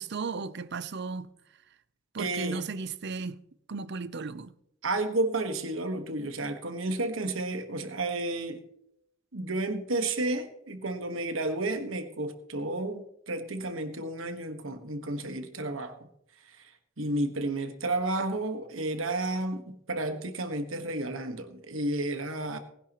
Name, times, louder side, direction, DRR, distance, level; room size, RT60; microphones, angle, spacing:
voice 1, 0.0-1.3 2.1-3.4 3.7-4.5, right 4 dB, 55° right, 0.6 m, -35 dB
voice 2, 2.2-2.7 4.8-8.7 9.3-16.0 16.5-16.6 17.0-22.6, right 2 dB, 75° right, 1.5 m, -32 dB
19.5 x 10.5 x 3.0 m
head